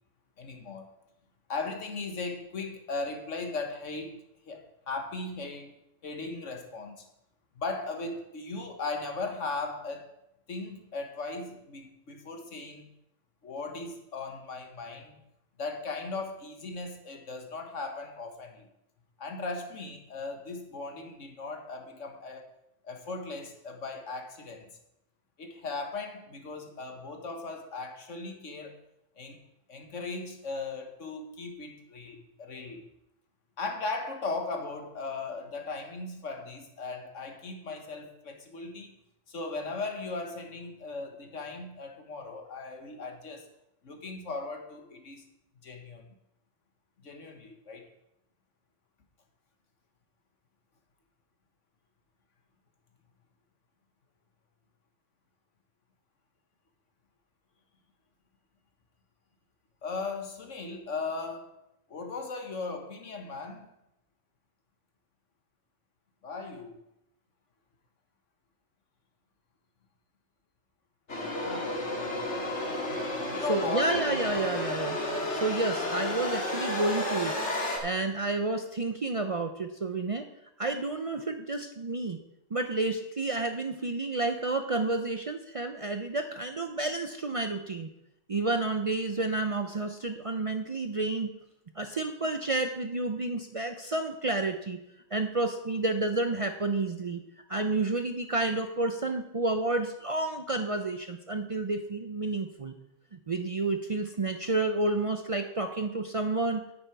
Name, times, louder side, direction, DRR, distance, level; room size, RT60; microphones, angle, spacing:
voice 1, 0.4-0.9 1.5-4.2 4.5-5.8 6.0-7.1 7.6-10.1 10.5-12.9 13.4-15.2 15.6-18.7 19.2-22.5 22.8-24.7 25.4-28.8 29.2-29.4 29.7-32.9 33.6-38.9 39.3-43.5 43.8-45.2 45.6-46.0 47.0-47.9 59.8-61.5 61.9-63.7 66.2-66.8 71.4-71.9 73.3-73.9, left 3 dB, 90° left, 4 dB, 1.7 m, -37 dB
sound 1, 71.1-77.8, left 1 dB, 70° left, 2.1 m, -32 dB
voice 2, 73.5-75.0 75.3-77.4 77.8-80.3 80.6-82.2 82.5-87.9 88.3-91.3 91.8-94.8 95.1-97.2 97.5-102.7 103.1-106.6, right 2 dB, 40° right, 7 dB, 0.5 m, -30 dB
10.0 x 8.8 x 4.6 m, 0.84 s
omnidirectional pair, 1.2 m